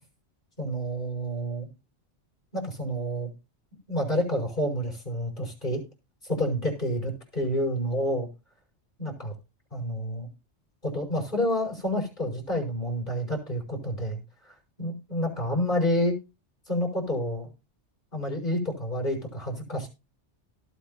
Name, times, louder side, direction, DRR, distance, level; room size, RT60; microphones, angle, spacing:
voice 1, 0.6-1.7 2.5-3.3 3.9-5.8 6.2-8.3 9.0-9.3 9.7-10.3 10.8-16.2 16.7-17.5 18.1-19.9, equal, 45° left, 0 dB, 6.0 m, -29 dB
18.5 x 8.4 x 2.8 m, 0.28 s
omnidirectional pair, 1.2 m